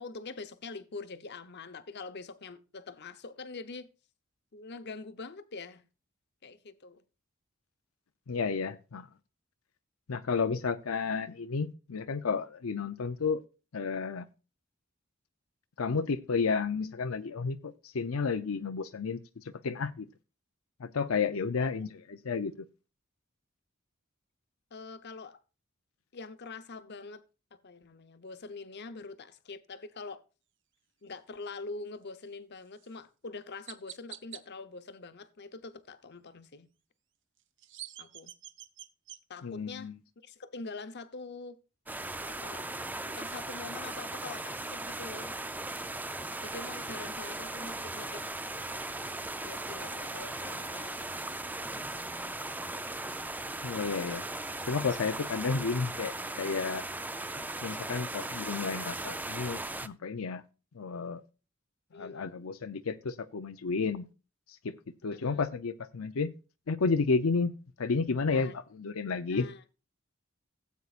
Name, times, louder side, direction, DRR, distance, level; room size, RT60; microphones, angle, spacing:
voice 1, 0.0-3.9 4.5-5.8 6.4-7.0 21.6-21.7 24.7-25.4 26.1-27.2 27.6-30.2 31.0-36.7 38.0-38.3 39.3-39.9 40.2-41.6 42.3-45.3 46.4-48.3 49.4-51.0 51.4-51.6 61.9-62.3 65.1-65.4 68.3-68.6 69.3-69.6, left 3 dB, 55° left, 0.9 m, -44 dB
voice 2, 8.3-9.1 10.1-13.4 13.7-14.2 15.8-19.2 19.6-20.1 20.8-22.5 39.4-39.9 53.6-54.2 54.7-56.1 56.4-56.8 57.6-60.4 60.7-61.2 61.9-64.1 64.6-64.7 65.0-66.3 66.7-67.5 67.8-69.5, left 4 dB, 90° left, 0.6 m, -31 dB
Chirp tweet, 32.8-32.9 33.7-34.4 37.4-39.2, right 12 dB, 60° right, 0.8 m, -46 dB
sound 1, 41.9-59.9, right 2 dB, 10° right, 0.5 m, -38 dB
17.0 x 8.2 x 2.5 m
head